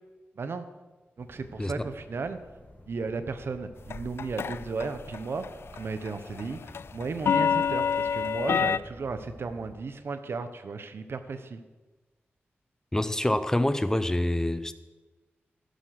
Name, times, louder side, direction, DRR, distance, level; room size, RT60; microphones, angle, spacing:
sound 1, 1.2-9.7, left 1 dB, 40° left, 3.3 m, -50 dB
voice 1, 1.2-2.4 2.9-6.6 6.9-11.6, right 4 dB, 70° right, 10 dB, 1.1 m, -35 dB
sound 2, 3.9-4.9 5.1-5.5 5.8-8.8, left 7 dB, 75° left, 0.3 m, -26 dB
voice 2, 12.9-14.7, left 1 dB, 15° left, 12 dB, 0.7 m, -26 dB
12.0 x 11.5 x 6.1 m, 1.2 s
wide cardioid pair, 90°, 4 cm